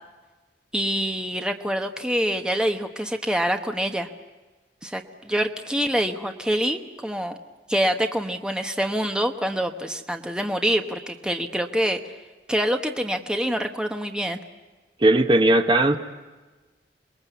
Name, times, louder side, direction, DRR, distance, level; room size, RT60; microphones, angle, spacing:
voice 1, 0.7-4.1 4.8-7.4 7.7-12.0 12.5-14.4, equal, 5° right, 5 dB, 1.1 m, -25 dB
voice 2, 15.0-16.0, right 1 dB, 30° right, 7 dB, 1.0 m, -17 dB
27.0 x 21.5 x 8.3 m, 1.2 s
head